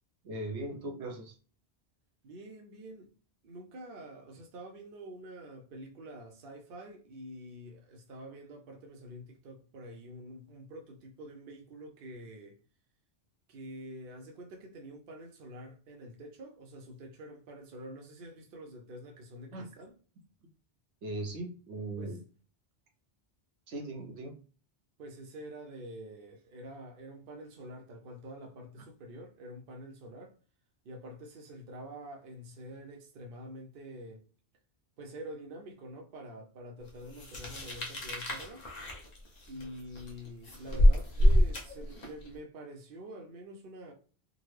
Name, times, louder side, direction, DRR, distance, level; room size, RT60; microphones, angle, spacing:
voice 1, 0.2-1.3 19.5-19.7 21.0-22.2 23.7-24.3, right 2 dB, 80° right, 1.0 m, -38 dB
voice 2, 2.2-3.1 3.4-12.6 13.5-19.9 22.0-22.2 25.0-30.4 30.8-34.2 35.0-38.6 39.5-43.9, right 1 dB, 60° right, 0.8 m, -47 dB
sound 1, 37.1-42.3, equal, 40° left, 0.9 m, -27 dB
3.8 x 2.0 x 3.1 m
omnidirectional pair, 1.1 m